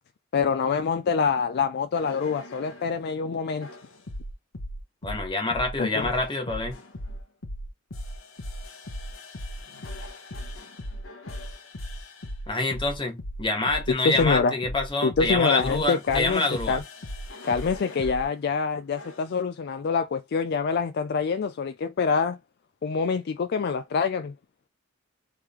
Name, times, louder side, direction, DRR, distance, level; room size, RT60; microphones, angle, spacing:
voice 1, 0.3-3.7 5.8-6.1 13.9-14.6 15.0-16.8 17.4-22.4 22.8-24.3, left 5 dB, 55° left, 0.4 m, -25 dB
sound 1, 1.9-2.9 3.6-18.3 19.0-19.3, equal, 70° left, 1.1 m, -38 dB
voice 2, 5.0-6.8 12.5-16.8, left 2 dB, 25° left, 1.4 m, -26 dB
3.7 x 3.3 x 4.3 m
head